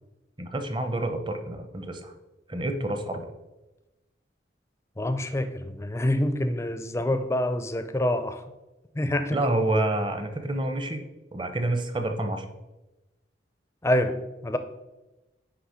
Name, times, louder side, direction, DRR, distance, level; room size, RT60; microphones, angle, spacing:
voice 1, 0.4-2.1 2.5-3.3 9.3-11.0 11.3-12.5, right 1 dB, 25° right, 0.7 m, -28 dB
voice 2, 5.0-8.4 8.9-9.4 13.8-14.6, left 1 dB, 15° left, 0.4 m, -26 dB
9.6 x 3.3 x 5.0 m
head